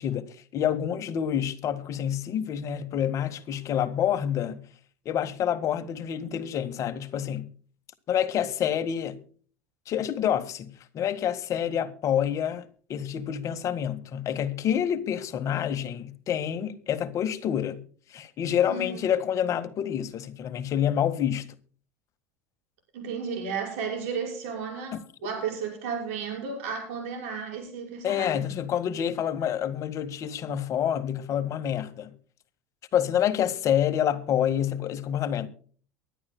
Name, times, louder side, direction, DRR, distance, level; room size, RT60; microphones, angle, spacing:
voice 1, 0.0-4.6 5.0-7.5 8.1-9.2 9.9-17.8 18.1-21.5 24.9-25.0 28.0-32.1 32.9-35.5, left 9 dB, 45° left, 1.7 m, -28 dB
voice 2, 18.6-19.0 22.9-28.6, right 6 dB, 75° right, 5.9 m, -33 dB
23.0 x 11.5 x 2.3 m
hypercardioid pair, 90°, 7 cm